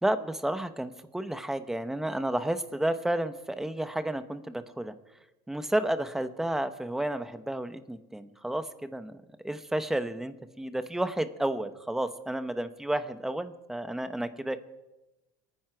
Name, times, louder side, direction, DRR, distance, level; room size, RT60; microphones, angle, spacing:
voice 1, 0.0-4.9 5.5-14.6, right 1 dB, 5° right, 10 dB, 0.9 m, -31 dB
28.0 x 9.8 x 4.7 m, 1.0 s
cardioid pair, 140°, 9 cm